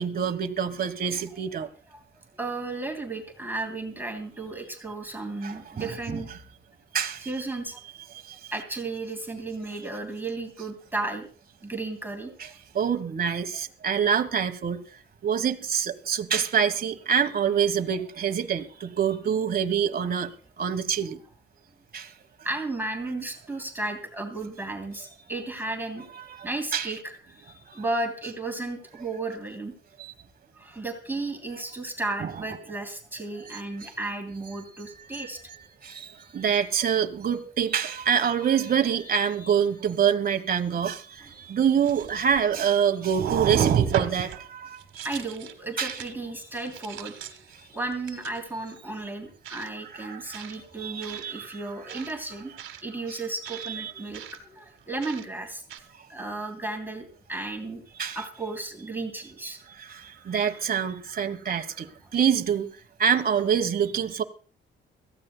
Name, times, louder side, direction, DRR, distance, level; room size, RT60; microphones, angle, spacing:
voice 1, 0.0-1.7 5.4-5.5 6.1-6.2 6.9-7.3 12.4-12.5 12.7-14.8 15.2-20.3 20.6-21.2 21.9-22.1 26.4-26.9 27.7-27.8 30.0-30.1 32.2-32.3 33.5-33.9 35.1-35.2 35.8-45.1 45.8-46.0 49.9-50.5 50.8-51.5 53.8-53.9 58.0-58.2 59.9-62.7 63.0-64.2, right 7 dB, 50° right, 1.3 m, -26 dB
voice 2, 2.4-6.3 7.2-7.8 8.5-11.3 11.6-12.3 22.4-26.1 26.4-27.1 27.7-29.7 30.5-35.4 45.0-47.4 47.7-52.5 52.8-55.6 56.1-57.8 58.1-59.6, right 2 dB, 10° right, 2.9 m, -34 dB
sound 1, 41.2-41.3 41.8-42.8 43.1-44.4 44.8-45.5 45.9-46.1 46.5-47.5 48.1-48.4 49.4-49.7 50.3-50.6 51.0-51.2 51.9-52.1 52.6-52.8 53.4-53.7 54.1-54.4 55.0-55.2 55.7-55.8, right 9 dB, 75° right, 1.6 m, -31 dB
22.0 x 15.0 x 2.3 m
cardioid pair, 90°, 20 cm